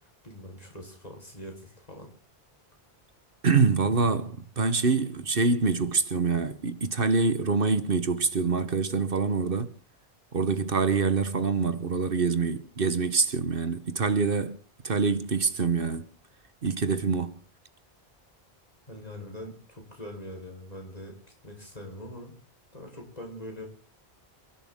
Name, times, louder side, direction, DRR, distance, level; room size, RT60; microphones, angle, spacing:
voice 1, 0.2-2.1 18.9-21.1 21.4-22.3 22.7-23.7, left 1 dB, 40° left, 4.7 m, -42 dB
voice 2, 3.4-9.7 10.3-14.6 14.8-16.1 16.6-17.3, right 4 dB, 65° right, 1.3 m, -25 dB
28.5 x 11.5 x 3.7 m
omnidirectional pair, 1.0 m